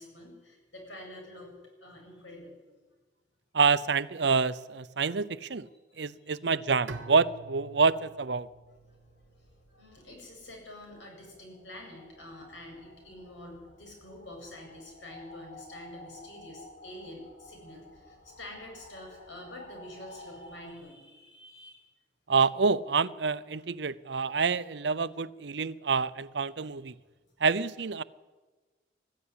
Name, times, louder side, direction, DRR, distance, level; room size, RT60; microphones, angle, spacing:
voice 1, 0.0-2.6 5.9-6.3 9.7-21.8, left 1 dB, 80° left, 2 dB, 7.8 m, -47 dB
voice 2, 3.5-5.7 6.0-8.5 22.3-26.9 27.4-28.0, right 5 dB, 65° right, 16 dB, 0.7 m, -27 dB
Bowed string instrument, 6.9-9.9, right 3 dB, 90° right, 1.2 m, -46 dB
sound 1, 8.4-20.7, left 1 dB, 55° left, 3.3 m, -53 dB
20.5 x 14.0 x 9.9 m, 1.3 s
head